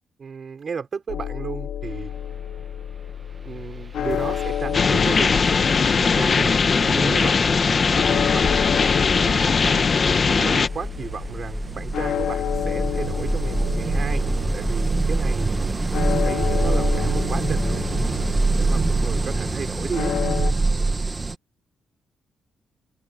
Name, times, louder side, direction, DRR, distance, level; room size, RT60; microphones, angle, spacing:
voice 1, 0.2-2.1 3.4-5.7 6.0-7.5 7.9-8.8 9.1-14.2 14.5-15.7 16.2-17.9 18.5-20.2, right 5 dB, 35° right, 5.0 m, -33 dB
sound 1, 1.1-20.5, left 9 dB, 85° left, 1.5 m, -30 dB
sound 2, 3.6-3.7 4.1-21.4, right 3 dB, 20° right, 0.8 m, -26 dB
sound 3, 4.7-10.7, left 5 dB, 30° left, 0.9 m, -20 dB
wide cardioid pair, 170°, 0 cm